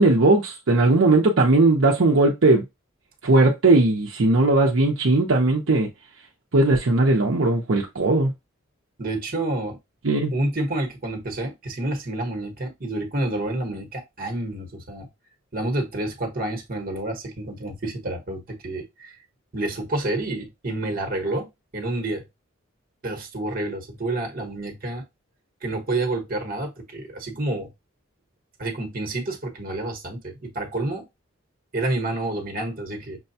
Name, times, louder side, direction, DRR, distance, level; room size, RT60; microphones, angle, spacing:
voice 1, 0.0-2.6 3.2-5.9 6.5-8.3 10.0-10.3, right 2 dB, 70° right, 0.8 m, -18 dB
voice 2, 9.0-9.8 10.3-15.1 15.5-19.1 19.5-22.2 23.0-25.0 25.6-27.7 28.6-31.0 31.7-33.2, right 2 dB, 45° right, 1.2 m, -29 dB
6.1 x 2.3 x 2.7 m
head